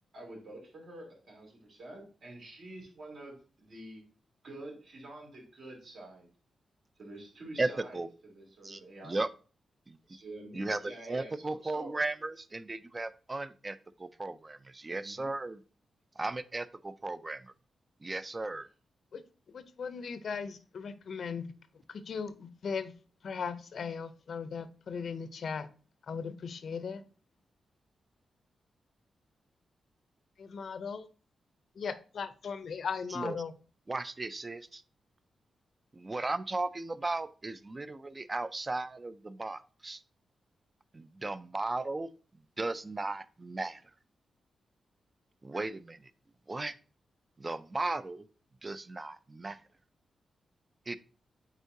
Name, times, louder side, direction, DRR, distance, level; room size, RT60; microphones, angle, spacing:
voice 1, 0.1-4.0 4.4-6.3 7.0-8.0 8.3-9.2 10.1-12.0 15.0-15.3, right 1 dB, 65° right, -1 dB, 2.8 m, -48 dB
voice 2, 7.6-8.1 8.6-9.3 9.9-10.0 10.5-15.6 16.2-17.5 18.0-18.7 33.1-33.4 33.9-34.8 35.9-40.0 40.9-42.1 42.6-43.8 45.4-46.1 46.5-46.7 47.4-48.3 48.6-49.6 50.9-51.0, right 2 dB, 20° right, 15 dB, 0.3 m, -36 dB
voice 3, 19.5-21.5 22.1-22.9 23.2-25.7 26.1-27.0 30.4-31.1 31.8-33.5, left 6 dB, 60° left, 12 dB, 0.5 m, -38 dB
8.1 x 4.4 x 2.7 m, 0.38 s
wide cardioid pair, 135°, 0 cm